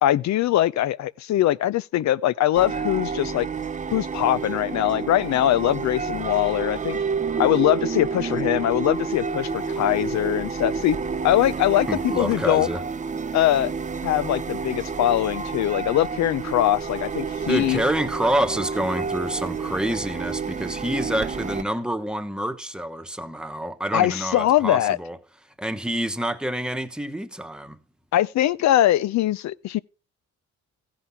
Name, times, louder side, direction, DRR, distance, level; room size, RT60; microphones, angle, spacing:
voice 1, 0.0-3.5 3.9-7.0 7.4-11.0 11.2-12.7 13.3-13.7 14.0-17.8 23.9-25.0 28.1-29.8, left 13 dB, 65° left, 0.6 m, -22 dB
sound 1, 2.5-21.6, right 5 dB, 25° right, 0.6 m, -29 dB
voice 2, 11.9-12.8 17.5-25.2 25.6-27.8, right 1 dB, 5° right, 1.1 m, -27 dB
15.0 x 10.0 x 3.6 m
cardioid pair, 90°, 30 cm